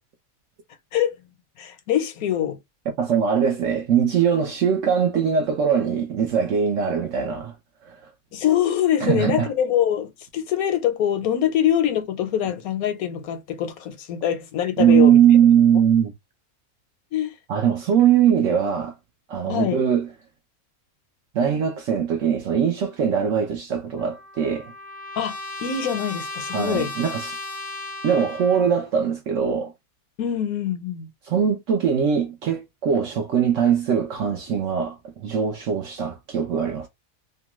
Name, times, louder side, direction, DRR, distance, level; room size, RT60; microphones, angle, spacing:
voice 1, 1.6-2.6 8.3-15.2 17.1-17.3 19.5-19.8 25.2-26.9 30.2-31.1, left 10 dB, 80° left, 1.1 m, -24 dB
voice 2, 3.0-7.5 7.8-8.0 9.0-9.5 14.8-16.1 17.5-18.9 19.3-20.1 21.3-24.7 26.5-27.4 28.0-29.7 31.2-36.9, right 8 dB, 65° right, 0.9 m, -21 dB
Trumpet, 24.0-28.9, left 2 dB, 60° left, 0.7 m, -35 dB
2.9 x 2.2 x 2.9 m
omnidirectional pair, 1.5 m